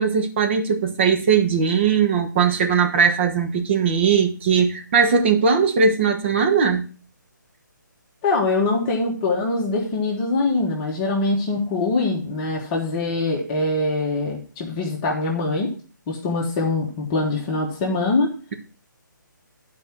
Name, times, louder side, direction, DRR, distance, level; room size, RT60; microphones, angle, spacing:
voice 1, 0.0-6.9, right 6 dB, 35° right, 5 dB, 1.4 m, -19 dB
voice 2, 8.2-15.7 16.1-18.3, left 3 dB, 25° left, -2 dB, 1.6 m, -23 dB
10.5 x 4.9 x 6.0 m, 0.38 s
hypercardioid pair, 155°, 11 cm